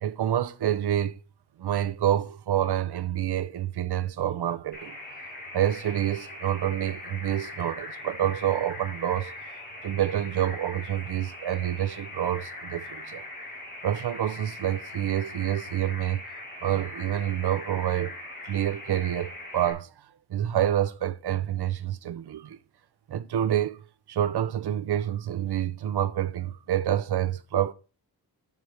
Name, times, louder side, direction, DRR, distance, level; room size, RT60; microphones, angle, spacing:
voice 1, 0.0-1.1 1.6-5.0 5.5-9.3 9.8-13.2 13.8-16.2 16.6-18.2 18.4-19.9 20.3-22.6 23.1-23.8 24.1-27.7, right 11 dB, 85° right, 0.8 m, -27 dB
sound 1, 4.7-19.7, left 2 dB, 25° left, 2.3 m, -41 dB
7.1 x 6.4 x 4.5 m
wide cardioid pair, 165°, 38 cm